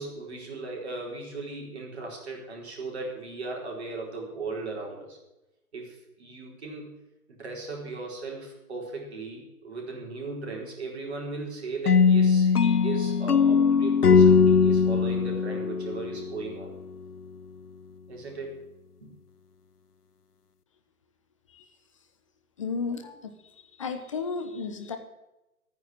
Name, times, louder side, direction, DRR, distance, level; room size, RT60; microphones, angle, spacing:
voice 1, 0.0-5.2 5.7-7.0 7.3-16.7 18.1-18.6 19.0-19.1, right 3 dB, 45° right, 0 dB, 4.3 m, -37 dB
sound 1, 11.9-16.7, left 5 dB, 90° left, 0.7 m, -20 dB
voice 2, 22.6-23.3 23.8-25.0, left 4 dB, 20° left, 7 dB, 0.9 m, -33 dB
12.5 x 9.5 x 7.4 m, 0.97 s
figure-of-eight pair, 145°, 45 cm